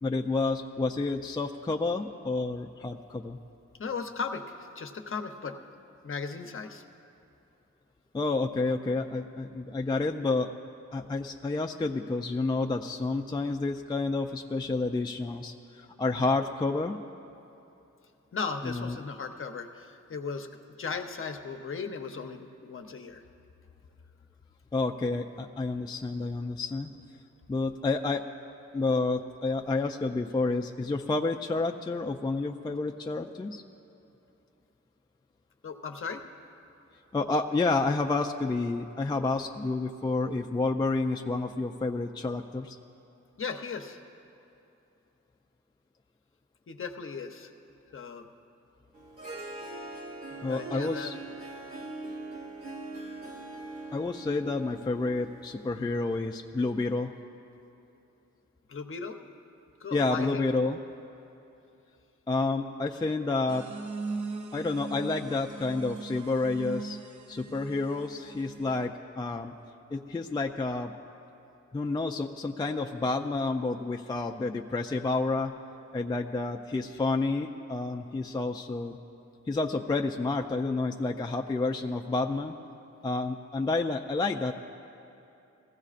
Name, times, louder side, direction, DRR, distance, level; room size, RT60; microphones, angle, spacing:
voice 1, 0.0-3.4 8.1-10.5 10.9-16.9 18.6-19.0 24.7-26.9 27.5-28.2 28.7-33.6 37.1-42.8 50.4-51.1 53.9-57.1 59.9-60.8 62.3-63.7 64.5-67.0 67.3-69.5 69.9-70.9 71.7-75.6 75.9-79.0 79.5-82.5 83.0-84.5, left 3 dB, 15° left, 3 dB, 0.3 m, -29 dB
voice 2, 3.8-5.6 6.0-6.8 18.3-20.5 20.8-23.2 35.6-36.2 43.4-44.0 46.7-47.5 47.9-48.3 49.4-49.6 50.4-51.1 58.7-59.2 59.8-60.5, left 5 dB, 45° left, 5 dB, 0.7 m, -37 dB
Harp, 48.9-56.0, right 2 dB, 55° right, 1.9 m, -42 dB
sound 1, 63.5-68.9, right 4 dB, 80° right, 0.7 m, -40 dB
21.5 x 15.5 x 2.5 m, 2.8 s
wide cardioid pair, 145°, 29 cm